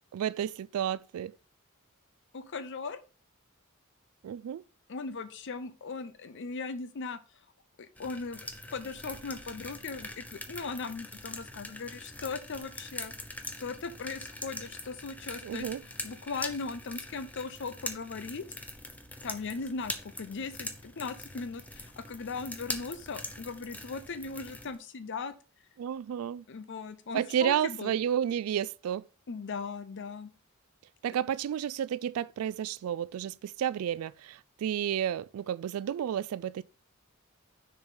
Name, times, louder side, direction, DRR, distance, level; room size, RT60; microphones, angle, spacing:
voice 1, 0.1-1.3 4.2-4.6 15.4-15.8 25.8-26.4 27.1-29.1 31.0-36.6, right 9 dB, 85° right, 0.3 m, -31 dB
voice 2, 2.3-3.0 4.9-7.2 7.8-13.1 13.6-15.7 16.0-18.5 19.2-25.3 26.5-27.9 29.3-30.3, left 4 dB, 60° left, 0.6 m, -38 dB
sound 1, 8.0-24.8, left 2 dB, 5° left, 0.7 m, -43 dB
6.5 x 4.7 x 5.2 m
head